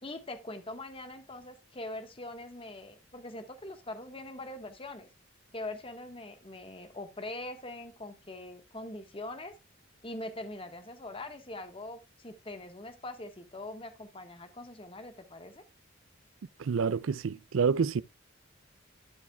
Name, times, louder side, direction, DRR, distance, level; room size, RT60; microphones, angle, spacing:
voice 1, 0.0-5.1 5.5-9.5 10.0-15.6, left 2 dB, 30° left, 1.5 m, -42 dB
voice 2, 16.6-18.0, right 5 dB, 85° right, 0.4 m, -28 dB
12.5 x 8.6 x 2.3 m
head